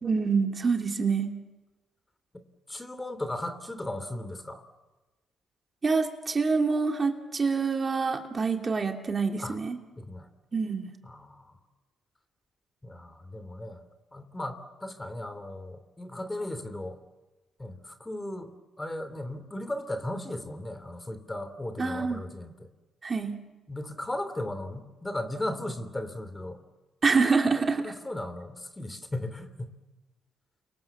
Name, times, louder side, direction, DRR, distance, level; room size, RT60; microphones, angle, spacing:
voice 1, 0.0-1.3 5.8-9.8 10.5-10.9 21.8-22.2 23.0-23.4 27.0-27.9, right 4 dB, 35° right, 3 dB, 2.8 m, -26 dB
voice 2, 2.7-4.6 9.4-9.6 10.0-10.3 11.0-11.5 12.8-13.8 14.1-17.0 17.6-18.5 18.8-22.7 23.7-26.6 27.8-29.8, left 1 dB, 15° left, 10 dB, 3.0 m, -36 dB
29.5 x 24.0 x 7.4 m, 1.1 s
cardioid pair, 90°, 0 cm